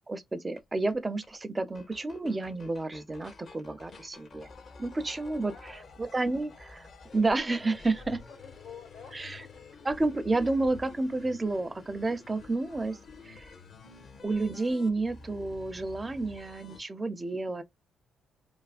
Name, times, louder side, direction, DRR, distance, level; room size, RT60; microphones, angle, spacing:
voice 1, 0.1-4.5 4.8-5.5 6.1-6.9 7.1-8.2 9.1-9.4 9.9-13.0 13.2-13.5 14.2-17.6, right 2 dB, 20° right, 0.5 m, -30 dB
sound 1, 0.6-0.7 0.9-1.0 1.2-1.3 1.6-16.8, left 4 dB, 50° left, 0.8 m, -50 dB
voice 2, 5.2-6.0 6.3-6.9 8.0-9.9 12.7-13.0, left 6 dB, 80° left, 2.0 m, -52 dB
3.3 x 2.1 x 2.4 m
cardioid pair, 90°, 0 cm